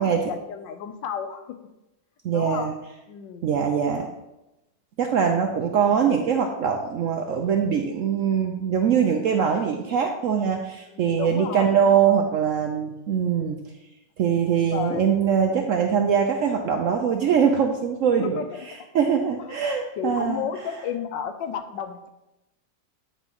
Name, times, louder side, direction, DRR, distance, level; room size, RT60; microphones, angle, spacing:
voice 1, 0.0-1.6 2.3-2.7 3.1-3.5 10.9-12.2 14.7-15.2 18.0-18.9 19.4-19.6 20.0-22.1, left 8 dB, 90° left, 8 dB, 1.4 m, -33 dB
voice 2, 2.2-2.7 3.4-4.1 5.0-13.6 14.2-18.4 18.9-20.4, right 7 dB, 75° right, 3 dB, 0.7 m, -22 dB
8.9 x 3.1 x 5.4 m, 0.94 s
omnidirectional pair, 1.9 m